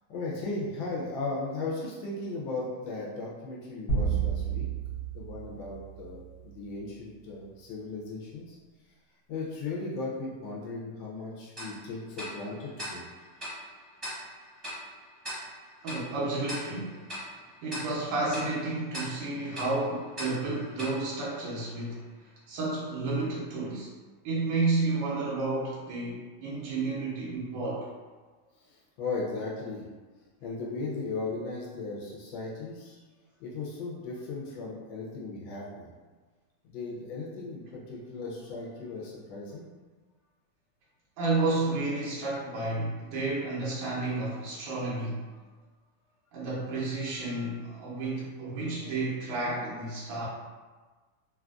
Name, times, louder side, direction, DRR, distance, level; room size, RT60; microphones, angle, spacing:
voice 1, 0.1-4.7 5.1-8.6 9.3-13.0 28.7-29.8 30.4-33.0 33.4-35.9 36.6-39.7 45.3-45.4 47.2-47.5, left 3 dB, 70° left, -4 dB, 1.2 m, -37 dB
sound 1, 3.9-6.5, right 6 dB, 55° left, 0.9 m, -31 dB
Tick-tock, 11.6-22.0, equal, 20° right, 0.7 m, -42 dB
voice 2, 15.8-17.0 17.6-22.0 22.5-23.9 24.2-27.9 41.2-45.2 46.3-50.3, right 3 dB, 90° right, -6 dB, 1.6 m, -31 dB
3.7 x 2.4 x 2.3 m, 1.3 s
omnidirectional pair, 2.4 m